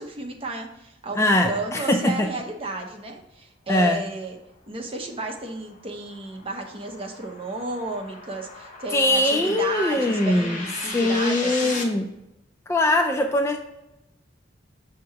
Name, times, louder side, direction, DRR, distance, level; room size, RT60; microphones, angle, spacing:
voice 1, 0.0-4.4 4.7-11.9, right 2 dB, 30° right, 2 dB, 0.8 m, -33 dB
voice 2, 1.2-2.3 3.7-4.0 8.9-10.5 10.9-12.1 12.7-13.6, left 1 dB, 15° left, 4 dB, 0.3 m, -21 dB
sound 1, 5.0-11.8, left 3 dB, 45° left, 1.0 m, -37 dB
6.1 x 2.9 x 5.6 m, 0.88 s
head